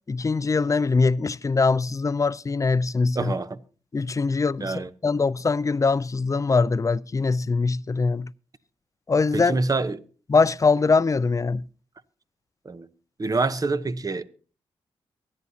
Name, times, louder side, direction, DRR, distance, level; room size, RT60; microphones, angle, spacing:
voice 1, 0.1-3.3 3.9-8.3 9.1-9.6 10.3-11.6, left 4 dB, 30° left, 0.5 m, -22 dB
voice 2, 3.1-3.6 4.6-4.9 9.3-10.0 12.6-12.9 13.2-14.2, right 3 dB, 35° right, 0.9 m, -26 dB
23.5 x 9.7 x 2.8 m
supercardioid pair, 50°, 11 cm